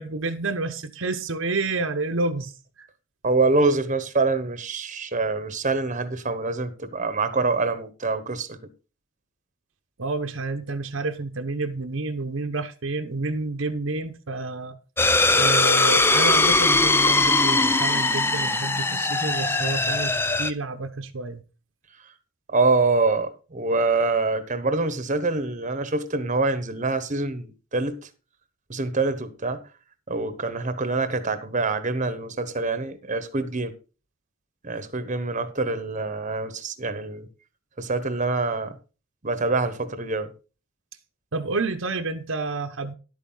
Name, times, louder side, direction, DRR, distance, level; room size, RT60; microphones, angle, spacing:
voice 1, 0.0-2.5 2.8-2.9 10.0-14.8 15.3-21.4 41.3-42.9, right 3 dB, 70° right, 1.0 m, -29 dB
voice 2, 3.2-8.6 22.5-28.0 28.7-29.6 30.1-33.7 34.6-37.3 37.8-38.7 39.2-40.3, right 3 dB, 35° right, 1.1 m, -25 dB
sound 1, 15.0-20.5, left 3 dB, 10° left, 0.5 m, -20 dB
11.0 x 8.5 x 3.9 m
head